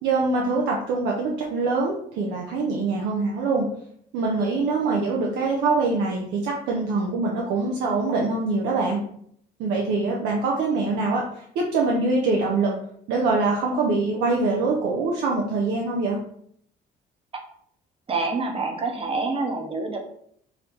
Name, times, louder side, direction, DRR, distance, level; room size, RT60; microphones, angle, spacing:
voice 1, 0.0-3.7 4.1-9.0 9.6-12.7 13.1-16.2, right 3 dB, 85° right, -1 dB, 0.7 m, -24 dB
voice 2, 18.1-20.0, right 3 dB, 35° right, 4 dB, 0.9 m, -27 dB
4.9 x 2.7 x 3.5 m, 0.67 s
cardioid pair, 110°, 17 cm